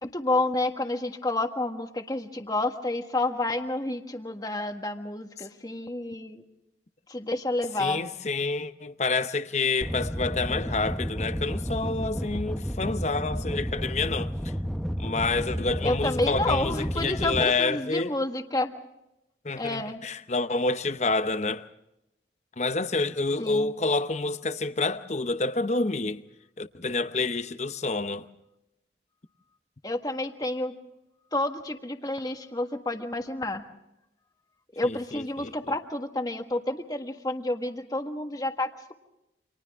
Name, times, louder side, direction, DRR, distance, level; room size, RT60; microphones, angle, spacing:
voice 1, 0.0-6.4 7.1-8.0 15.8-18.7 19.6-20.0 23.4-23.7 29.8-30.7 31.3-33.6 34.7-38.9, left 2 dB, 20° left, 1.5 m, -29 dB
voice 2, 7.8-14.5 15.0-18.1 19.4-21.6 22.6-26.2 26.6-28.3 34.8-35.7, left 3 dB, 40° left, 0.8 m, -28 dB
sound 1, 9.8-17.4, equal, ahead, 0.8 m, -31 dB
29.5 x 26.5 x 3.6 m
head